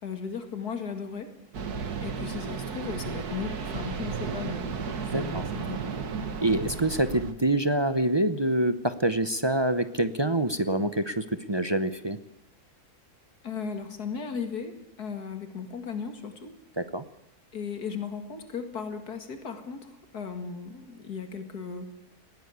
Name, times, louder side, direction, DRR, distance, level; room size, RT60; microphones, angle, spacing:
voice 1, 0.0-1.3 2.0-4.7 5.1-6.1 13.4-16.5 17.5-21.9, left 6 dB, 85° left, 7 dB, 2.6 m, -36 dB
sound 1, 1.5-7.3, right 6 dB, 85° right, 2.1 m, -34 dB
voice 2, 5.1-5.4 6.4-12.2 16.8-17.0, right 1 dB, 25° right, 11 dB, 0.7 m, -26 dB
20.0 x 16.5 x 8.2 m, 0.87 s
omnidirectional pair, 1.6 m